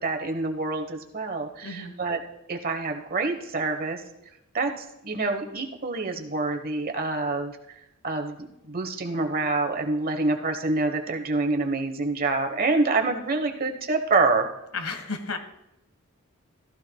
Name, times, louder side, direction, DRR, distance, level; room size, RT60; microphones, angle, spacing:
voice 1, 0.0-2.2 2.5-4.0 4.5-4.7 5.0-7.5 8.0-8.4 8.6-14.5, right 3 dB, 45° right, 5 dB, 1.2 m, -26 dB
voice 2, 1.6-1.9 14.7-15.4, left 4 dB, 90° left, 8 dB, 1.4 m, -32 dB
15.5 x 14.0 x 2.3 m, 0.87 s
head